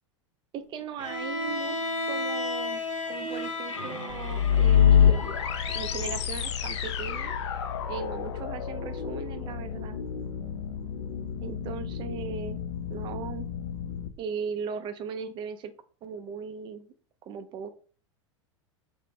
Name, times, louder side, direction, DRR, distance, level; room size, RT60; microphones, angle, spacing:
voice 1, 0.5-1.8 2.1-2.8 3.1-5.4 5.7-7.3 7.9-10.0 11.4-12.6 12.9-13.5 14.2-15.7 16.0-16.9 17.2-17.7, right 6 dB, 30° right, 10 dB, 0.4 m, -38 dB
Bowed string instrument, 1.0-6.2, left 2 dB, 90° left, 0.8 m, -34 dB
sound 1, 4.1-14.1, left 8 dB, 65° left, 0.4 m, -27 dB
3.4 x 2.4 x 3.0 m, 0.40 s
figure-of-eight pair, 90°, 16 cm